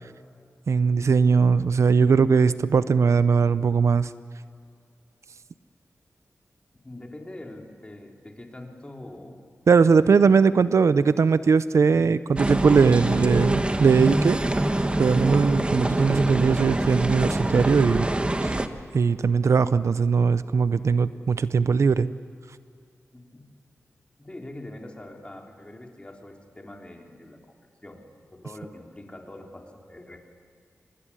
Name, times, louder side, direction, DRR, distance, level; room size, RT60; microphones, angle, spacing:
voice 1, 0.7-4.1 9.7-14.4 15.0-18.1 18.4-18.6 18.9-22.1, right 5 dB, 70° right, 14 dB, 0.6 m, -20 dB
voice 2, 6.8-9.4 23.1-23.5 24.2-27.4 27.8-30.2, left 1 dB, 20° left, 1 dB, 3.4 m, -43 dB
sound 1, 12.4-18.7, right 1 dB, 20° right, 1.3 m, -25 dB
25.0 x 22.0 x 9.9 m, 2.3 s
wide cardioid pair, 90°, 5 cm